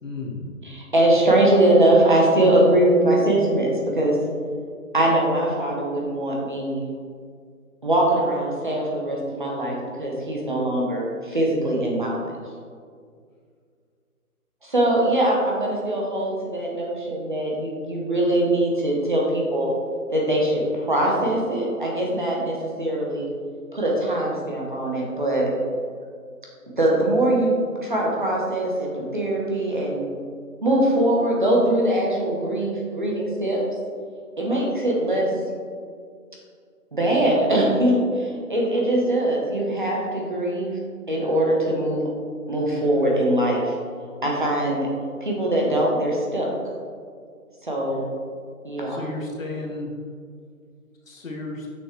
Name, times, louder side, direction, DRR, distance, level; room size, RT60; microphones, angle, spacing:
voice 1, 0.0-0.5 48.9-49.9 51.1-51.7, left 2 dB, 60° left, -1 dB, 1.4 m, -33 dB
voice 2, 0.6-4.2 4.9-6.8 7.8-12.3 14.6-19.7 20.1-23.3 23.7-25.5 26.7-27.5 27.8-30.1 30.6-33.6 34.4-35.3 36.9-40.8 41.1-42.1 42.5-43.7 44.2-44.9 45.2-46.5 47.6-48.0 48.6-49.0, right 1 dB, 35° right, -3 dB, 0.9 m, -22 dB
6.6 x 6.2 x 3.1 m, 2.1 s
hypercardioid pair, 175°, 44 cm